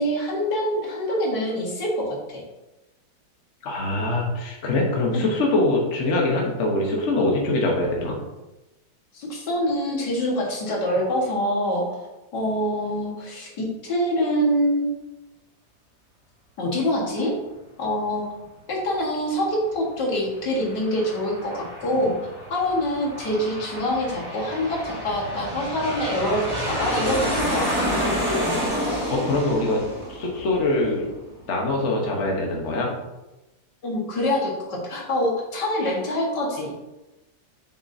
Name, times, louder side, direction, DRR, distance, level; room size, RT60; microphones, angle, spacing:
voice 1, 0.0-2.4 5.1-5.3 9.1-12.0 12.3-14.9 16.6-17.3 17.8-18.3 18.7-22.1 22.5-27.9 33.8-36.7, equal, 80° left, -3 dB, 2.3 m, -25 dB
voice 2, 3.6-8.2 29.1-29.8 30.1-31.1 31.5-32.9 35.8-35.9, left 2 dB, 45° left, -1 dB, 1.4 m, -23 dB
Aircraft, 20.3-31.4, equal, 20° right, 1.7 m, -29 dB
7.3 x 6.4 x 2.8 m, 1.0 s
omnidirectional pair, 1.8 m